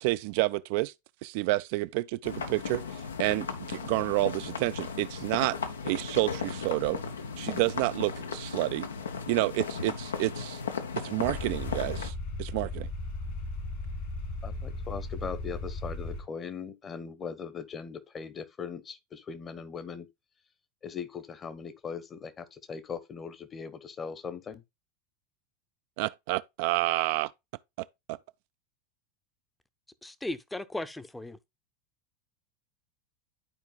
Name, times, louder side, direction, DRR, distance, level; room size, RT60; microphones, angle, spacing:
voice 1, 0.0-0.9 1.2-2.8 3.2-5.6 5.8-7.0 7.4-8.9 9.3-10.6 11.0-12.1 12.4-12.9 26.0-27.3 28.1-28.2, right 19 dB, 55° right, 0.3 m, -29 dB
sound 1, 2.2-12.1, left 5 dB, 75° left, 0.7 m, -36 dB
sound 2, 11.2-16.2, left 2 dB, 55° left, 2.7 m, -36 dB
voice 2, 14.4-20.1 20.8-24.6, left 6 dB, 25° left, 1.0 m, -39 dB
voice 3, 30.0-31.4, left 1 dB, 5° left, 0.7 m, -36 dB
12.0 x 4.5 x 2.3 m
figure-of-eight pair, 80°, 0 cm